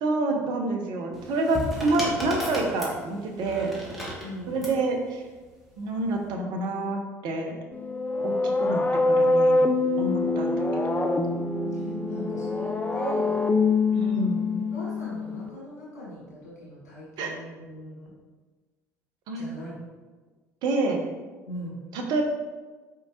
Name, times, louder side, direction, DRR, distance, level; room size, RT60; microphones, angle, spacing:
voice 1, 0.0-3.7 4.5-5.2 5.8-7.5 8.2-9.7 10.0-11.1 13.9-14.7 17.2-17.3 19.3-19.5 20.6-21.0 21.9-22.2, right 2 dB, 55° right, 2 dB, 0.7 m, -28 dB
sound 1, 1.1-4.8 5.9-6.2, right 1 dB, ahead, 1.4 m, -35 dB
voice 2, 4.2-4.6 11.7-13.4 14.0-14.4 14.7-18.1 19.3-19.8 21.5-21.8, equal, 85° left, -7 dB, 1.5 m, -40 dB
sound 2, 7.7-15.5, left 3 dB, 20° left, 0.4 m, -25 dB
4.5 x 3.6 x 2.8 m, 1.3 s
hypercardioid pair, 60°, 8 cm